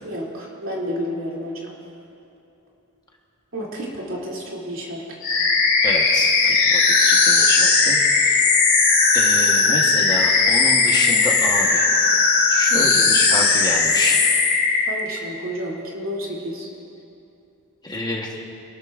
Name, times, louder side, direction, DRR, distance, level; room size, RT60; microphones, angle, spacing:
voice 1, 0.0-1.7 3.5-5.2 12.7-12.9 14.9-16.7, equal, 60° right, -4 dB, 2.9 m, -30 dB
sound 1, 5.2-14.9, left 4 dB, 40° left, 2.5 m, -17 dB
voice 2, 5.8-8.4 9.1-11.9 12.5-14.3 17.8-18.3, left 2 dB, 20° left, -1 dB, 1.2 m, -28 dB
26.0 x 13.0 x 2.6 m, 2.8 s
head